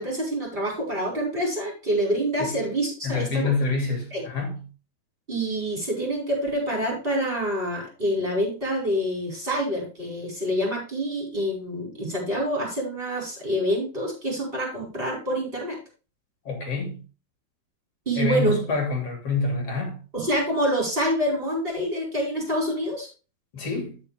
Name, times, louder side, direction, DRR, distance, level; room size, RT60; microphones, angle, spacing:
voice 1, 0.0-3.5 4.1-4.2 5.3-15.8 18.0-18.6 20.1-23.1, equal, 15° right, 5.0 m, -26 dB
voice 2, 3.0-4.6 16.5-17.0 18.1-20.0 23.5-24.0, left 3 dB, 40° left, 3.5 m, -27 dB
13.5 x 6.1 x 3.3 m
omnidirectional pair, 4.5 m